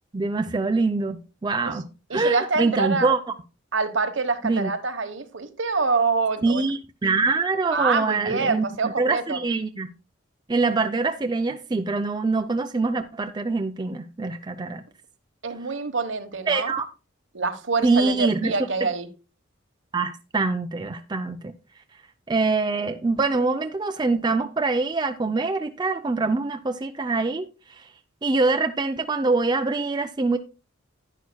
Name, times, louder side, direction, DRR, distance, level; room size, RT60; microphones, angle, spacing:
voice 1, 0.1-3.2 4.4-4.7 6.4-9.9 10.5-14.8 16.5-16.9 17.8-18.5 19.9-21.5 22.3-27.9 28.2-30.4, right 3 dB, 20° right, 0.4 m, -24 dB
voice 2, 2.1-3.1 3.7-6.6 7.7-9.4 15.4-16.7 17.3-19.1, right 4 dB, 65° right, 1.1 m, -26 dB
11.0 x 9.4 x 2.2 m
head